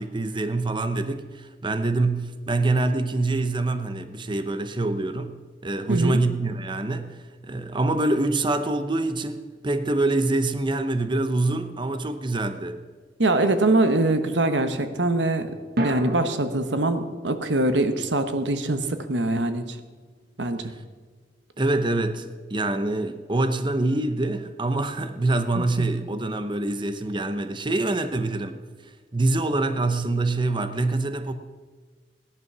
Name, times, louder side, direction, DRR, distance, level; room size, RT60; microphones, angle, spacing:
voice 1, 0.0-12.8 20.7-20.8 21.6-28.6 29.1-31.3, right 2 dB, 25° right, 9 dB, 0.8 m, -25 dB
voice 2, 5.9-6.2 13.2-19.8 20.4-20.7 25.5-25.6, right 2 dB, 90° right, 9 dB, 1.2 m, -23 dB
sound 1, 15.8-20.1, right 1 dB, 60° right, 1.5 m, -35 dB
16.5 x 10.5 x 6.1 m, 1.4 s
head